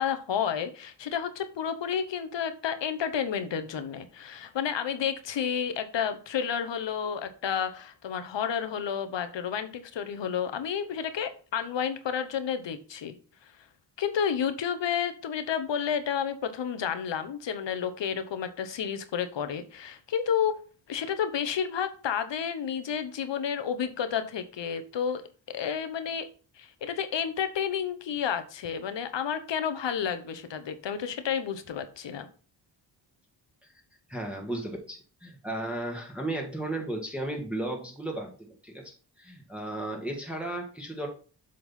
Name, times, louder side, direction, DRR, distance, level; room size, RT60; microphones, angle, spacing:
voice 1, 0.0-13.1 14.0-20.6 20.9-25.2 25.5-26.3 26.6-32.3, left 8 dB, 75° left, 10 dB, 1.1 m, -31 dB
voice 2, 34.1-41.1, right 1 dB, 5° right, 0 dB, 1.5 m, -35 dB
7.7 x 3.9 x 5.5 m, 0.38 s
cardioid pair, 90°, 45 cm